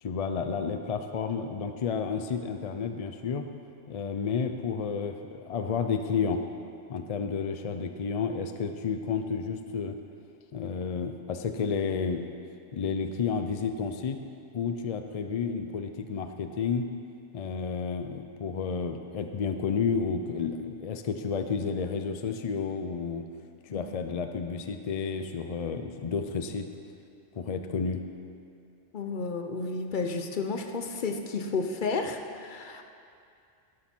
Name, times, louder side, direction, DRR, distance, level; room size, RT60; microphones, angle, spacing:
voice 1, 0.0-3.5 3.9-6.4 6.9-10.0 10.5-12.2 12.7-14.2 14.5-16.9 17.3-23.3 23.7-26.7 27.4-28.0, left 5 dB, 65° left, 7 dB, 0.3 m, -31 dB
voice 2, 28.9-32.8, left 4 dB, 45° left, 5 dB, 0.8 m, -32 dB
11.5 x 11.5 x 4.4 m, 2.5 s
omnidirectional pair, 1.3 m